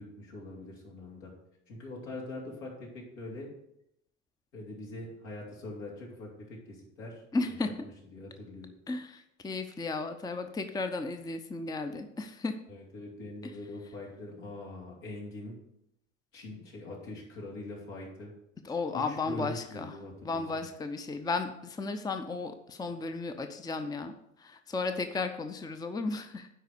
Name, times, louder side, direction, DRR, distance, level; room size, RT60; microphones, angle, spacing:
voice 1, 0.0-1.3 1.7-3.5 4.5-8.7 12.7-15.6 16.3-18.3 18.9-20.7, left 2 dB, 75° left, -3 dB, 3.0 m, -43 dB
voice 2, 7.3-7.7 8.9-12.5 18.6-19.9 20.2-24.1 24.4-26.5, left 3 dB, 10° left, 7 dB, 0.7 m, -34 dB
10.0 x 4.1 x 6.6 m, 0.80 s
hypercardioid pair, 75°, 37 cm